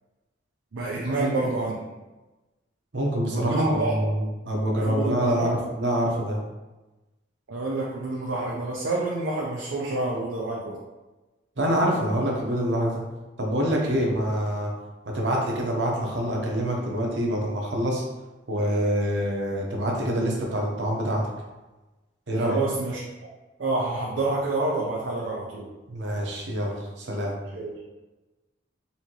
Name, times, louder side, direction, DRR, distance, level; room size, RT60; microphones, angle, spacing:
voice 1, 0.7-1.8 3.3-4.0 4.8-5.5 7.5-10.8 22.4-23.0 23.6-25.7 27.5-27.7, right 2 dB, 90° right, -3 dB, 0.6 m, -28 dB
voice 2, 2.9-5.5 5.7-6.4 11.6-12.9 13.4-14.7 15.1-18.0 18.5-21.2 22.3-22.6 25.9-27.3, equal, 65° right, -1 dB, 0.9 m, -26 dB
4.2 x 2.8 x 2.9 m, 1.1 s
head